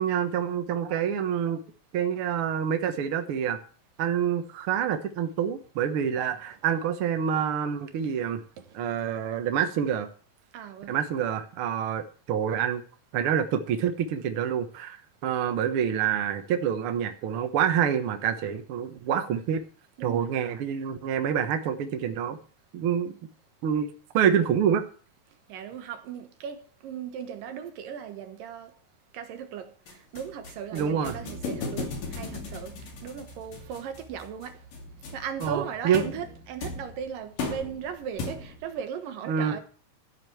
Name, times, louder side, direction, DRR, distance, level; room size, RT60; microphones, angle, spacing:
voice 1, 0.0-1.6 1.9-3.6 4.0-8.4 8.7-10.1 10.9-12.8 13.1-19.6 20.0-22.4 22.7-23.2 23.6-23.9 24.1-24.8 30.7-31.2 35.4-36.0 39.2-39.6, right 8 dB, 60° right, 1.5 m, -27 dB
voice 2, 10.5-11.0 20.0-20.3 25.5-28.7 29.1-29.7 30.1-34.6 35.1-39.6, right 8 dB, 75° right, 2.9 m, -37 dB
sound 1, 29.9-38.7, left 3 dB, 75° left, 4.1 m, -38 dB
14.0 x 5.3 x 7.7 m
omnidirectional pair, 3.9 m